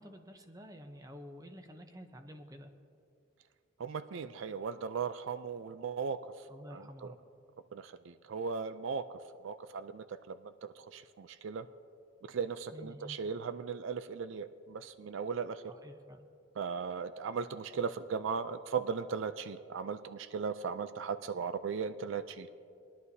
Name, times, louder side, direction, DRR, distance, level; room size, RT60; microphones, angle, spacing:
voice 1, 0.0-2.7 6.5-7.2 12.7-13.2 15.7-16.3, equal, 15° right, 6 dB, 0.7 m, -50 dB
voice 2, 3.8-6.2 6.7-7.1 7.7-9.1 9.4-11.7 12.3-15.7 16.6-22.5, right 6 dB, 70° right, 12 dB, 0.4 m, -37 dB
20.5 x 11.5 x 2.7 m, 2.4 s
head